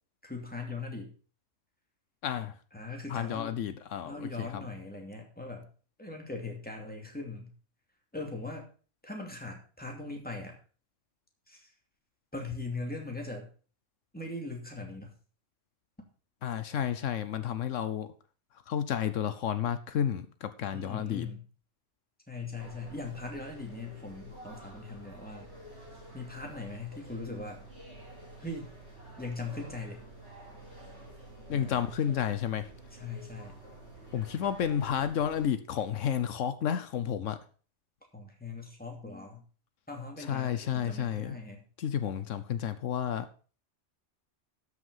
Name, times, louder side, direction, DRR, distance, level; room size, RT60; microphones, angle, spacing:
voice 1, 0.2-1.1 2.7-3.6 4.0-5.7 6.0-7.5 8.1-8.7 9.0-10.5 11.5-11.7 12.3-13.5 14.1-15.1 20.7-21.4 22.3-25.5 26.1-27.6 28.4-28.7 29.2-30.0 31.5-31.8 32.9-33.5 38.1-39.4 39.9-41.6, left 3 dB, 5° left, 1 dB, 2.6 m, -40 dB
voice 2, 2.2-2.5 3.1-4.6 16.4-18.1 18.7-21.3 31.5-32.7 34.1-37.4 40.2-41.4 41.8-43.3, left 9 dB, 80° left, 12 dB, 1.1 m, -31 dB
sound 1, 22.6-35.5, right 1 dB, 60° right, 6.3 m, -49 dB
13.0 x 6.3 x 5.5 m, 0.39 s
omnidirectional pair, 1.3 m